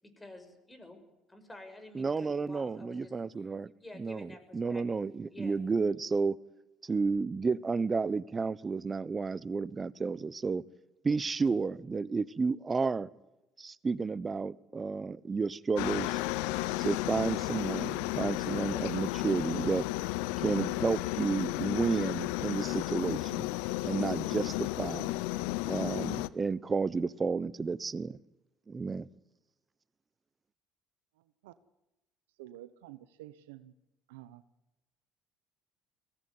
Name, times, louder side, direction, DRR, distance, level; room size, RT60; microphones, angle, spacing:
voice 1, 0.0-1.0 1.3-3.1 3.8-5.0 5.3-5.6, left 2 dB, 15° left, 7 dB, 6.6 m, -50 dB
voice 2, 1.9-6.4 6.8-10.6 11.0-13.1 13.6-16.2 16.8-19.9 20.4-23.5 23.8-25.1 25.6-28.2 28.7-29.1, right 4 dB, 30° right, 19 dB, 1.0 m, -32 dB
Aircraft, 15.8-26.3, left 18 dB, 80° left, 0.7 m, -33 dB
voice 3, 32.4-33.7 34.1-34.4, right 14 dB, 85° right, 13 dB, 0.9 m, -49 dB
22.5 x 18.0 x 9.6 m, 0.98 s
hypercardioid pair, 70°, 0 cm